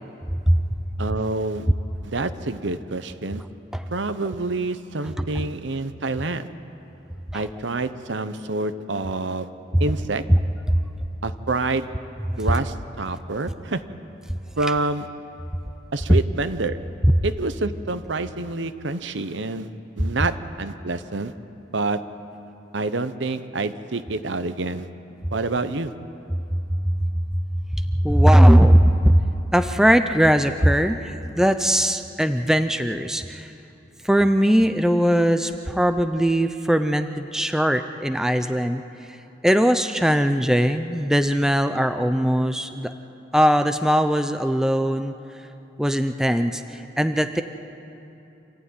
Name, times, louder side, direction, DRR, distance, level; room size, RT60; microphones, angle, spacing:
voice 1, 0.3-0.6 3.7-3.8 7.3-7.4 10.3-10.4 10.7-10.8 12.3-12.4 16.1-16.2 26.5-27.2 27.9-29.2 29.5-33.5 34.0-38.8 39.1-39.2 39.4-42.9 43.3-45.1 45.8-47.4, equal, 5° right, 8 dB, 0.6 m, -19 dB
voice 2, 1.0-1.7 2.0-3.4 3.9-6.5 7.3-9.5 9.8-10.2 11.2-11.9 12.4-13.8 14.6-15.1 15.9-16.8 17.2-19.7 20.0-21.3 21.7-22.0 22.7-24.9 25.3-25.9, right 3 dB, 75° right, 11 dB, 0.9 m, -27 dB
26.5 x 14.5 x 9.6 m, 2.9 s
head